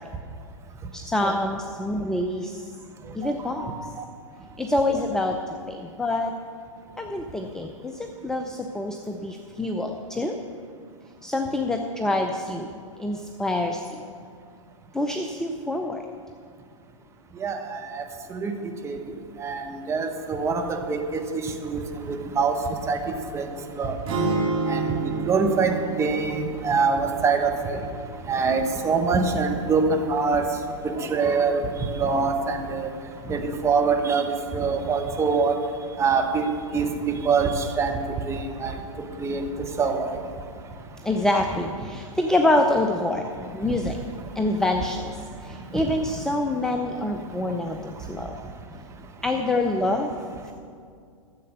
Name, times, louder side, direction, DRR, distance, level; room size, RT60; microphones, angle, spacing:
voice 1, 0.9-2.7 3.1-3.9 4.6-6.3 7.0-10.4 11.2-12.7 13.0-14.0 14.9-16.0 41.0-43.3 43.5-44.0 44.4-45.1 45.4-48.4 49.2-50.1, left 2 dB, 5° left, 4 dB, 0.6 m, -26 dB
voice 2, 17.4-18.0 18.4-18.5 18.8-19.0 19.4-19.6 19.9-20.6 20.9-21.2 21.6-21.8 22.1-22.5 22.9-23.0 23.3-23.4 23.7-23.9 24.7-24.8 25.2-27.8 28.3-30.5 30.8-31.6 32.0-32.9 33.3-34.2 34.5-35.5 36.0-36.4 36.7-38.0 38.3-38.7 39.2-39.4 39.8-40.0, right 5 dB, 15° right, 3 dB, 1.3 m, -24 dB
sound 1, 24.1-28.2, right 3 dB, 35° right, 3.1 m, -29 dB
13.5 x 7.7 x 6.7 m, 2.2 s
hypercardioid pair, 115°, 17 cm